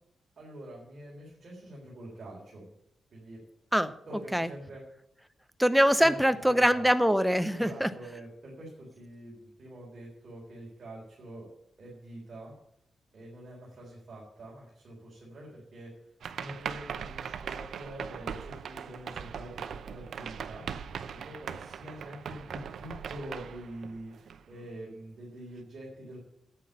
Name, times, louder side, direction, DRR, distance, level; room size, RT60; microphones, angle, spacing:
voice 1, 0.4-2.7 3.1-3.4 4.1-4.8 6.0-6.9 7.5-11.5 11.8-12.5 13.1-20.7 21.1-26.2, right 1 dB, 40° right, -4 dB, 3.9 m, -45 dB
voice 2, 5.6-7.9, equal, ahead, 11 dB, 0.6 m, -23 dB
sound 1, 16.2-24.7, right 7 dB, 65° right, 0.7 m, -40 dB
9.8 x 8.5 x 8.6 m, 0.78 s
wide cardioid pair, 160°, 0 cm